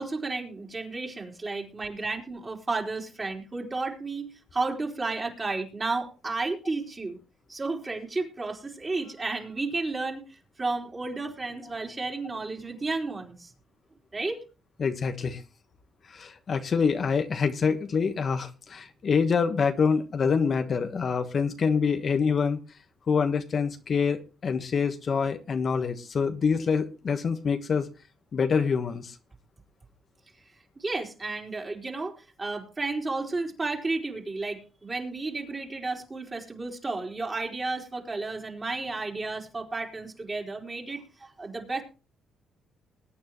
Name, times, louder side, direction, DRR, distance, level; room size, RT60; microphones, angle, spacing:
voice 1, 0.0-7.2 7.5-13.5 14.1-14.4 30.8-41.8, right 3 dB, 25° right, 2 dB, 3.8 m, -32 dB
voice 2, 14.8-15.4 16.1-22.6 23.1-27.9 28.3-29.1, left 5 dB, 50° left, 7 dB, 1.3 m, -26 dB
21.0 x 9.5 x 3.1 m, 0.33 s
cardioid pair, 90°, 0 cm